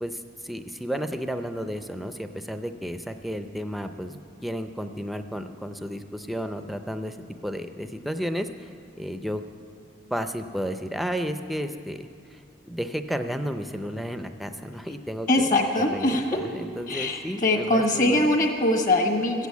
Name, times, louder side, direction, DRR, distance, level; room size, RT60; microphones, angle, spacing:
voice 1, 0.0-7.2 7.4-8.7 9.0-9.4 10.1-12.4 12.7-15.5 15.8-18.3, equal, ahead, 8 dB, 0.5 m, -32 dB
voice 2, 15.3-16.5 16.9-19.5, left 1 dB, 45° left, 4 dB, 1.4 m, -22 dB
14.5 x 8.3 x 8.3 m, 2.4 s
head